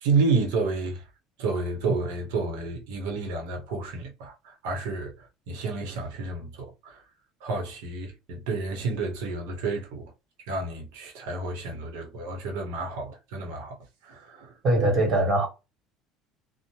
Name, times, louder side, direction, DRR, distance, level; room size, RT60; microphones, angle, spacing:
voice 1, 0.0-1.0 1.4-7.0 7.4-10.1 10.5-13.8 14.0-14.5, right 4 dB, 90° right, 0.8 m, -30 dB
voice 2, 14.6-15.5, right 1 dB, 40° right, 1.3 m, -21 dB
2.7 x 2.1 x 3.0 m
cardioid pair, 145°, 0 cm